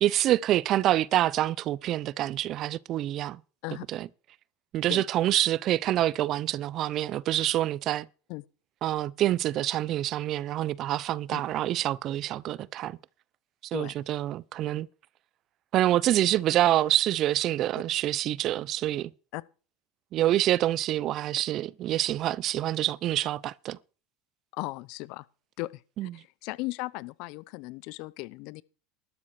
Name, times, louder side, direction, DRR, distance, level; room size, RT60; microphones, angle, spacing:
voice 1, 0.0-3.4 3.9-4.1 4.7-8.1 8.8-13.0 13.7-14.9 15.7-19.1 20.1-23.8 26.0-26.1, right 13 dB, 50° right, 0.5 m, -26 dB
voice 2, 24.5-25.2 25.6-28.6, left 22 dB, 65° left, 0.6 m, -37 dB
12.5 x 7.1 x 6.4 m
hypercardioid pair, 85°, 0 cm